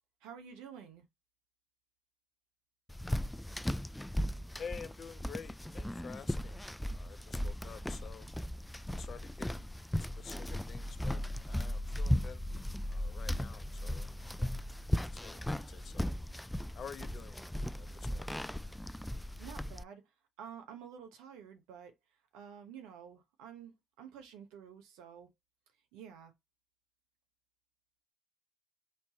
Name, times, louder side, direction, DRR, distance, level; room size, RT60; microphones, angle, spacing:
voice 1, 0.2-1.0 19.4-20.0 20.4-21.9 22.3-25.3 25.9-26.3, right 8 dB, 85° right, 1.0 m, -50 dB
sound 1, 2.9-19.8, left 1 dB, 10° left, 0.3 m, -37 dB
voice 2, 4.6-6.6 6.9-8.3 9.0-9.7 10.0-12.5 12.9-14.1 14.4-14.6 15.0-15.4 15.7-16.1 16.7-17.4 17.7-18.4, left 7 dB, 60° left, 0.7 m, -49 dB
4.3 x 2.7 x 4.1 m
hypercardioid pair, 50°, 0 cm